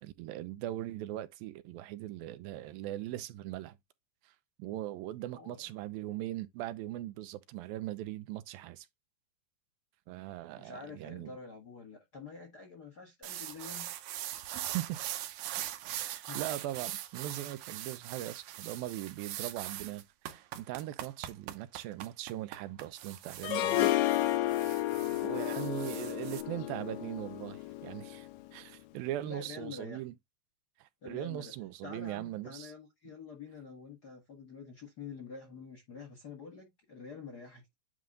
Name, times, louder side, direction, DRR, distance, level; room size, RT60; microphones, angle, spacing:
voice 1, 0.0-3.8 4.3-4.4 4.6-8.9 10.1-11.4 14.6-15.0 15.9-23.9 25.2-30.1 30.8-32.7, right 14 dB, 90° right, 2.6 m, -40 dB
voice 2, 5.3-5.6 10.5-13.9 16.2-16.4 24.9-25.2 29.2-30.0 31.0-31.5 31.8-37.7, left 5 dB, 45° left, 1.3 m, -47 dB
sound 1, 13.2-26.4, right 12 dB, 70° right, 1.9 m, -41 dB
Harp, 23.4-28.5, left 15 dB, 80° left, 2.2 m, -32 dB
9.3 x 3.1 x 3.7 m
omnidirectional pair, 4.0 m